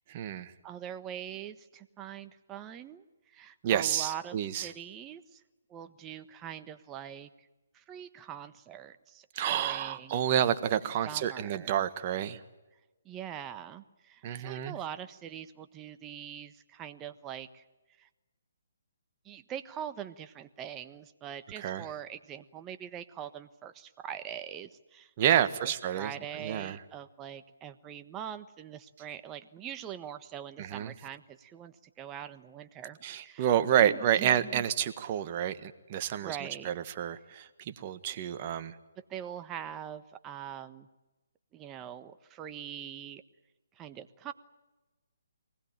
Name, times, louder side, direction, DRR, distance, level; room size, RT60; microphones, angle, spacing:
voice 1, 0.1-0.5 3.6-4.7 9.3-12.4 14.2-14.8 21.6-21.8 25.2-26.8 30.6-30.9 33.0-36.4 36.6-38.7, right 10 dB, 35° right, 10 dB, 1.5 m, -29 dB
voice 2, 0.6-5.4 5.7-7.5 7.7-10.2 11.0-11.8 13.0-17.6 18.0-18.1 19.2-33.5 33.8-34.6 36.2-36.7 39.1-40.9 41.5-43.2 43.7-44.3, right 9 dB, 20° right, 10 dB, 1.2 m, -43 dB
24.0 x 19.5 x 8.9 m, 1.1 s
figure-of-eight pair, 145°, 0 cm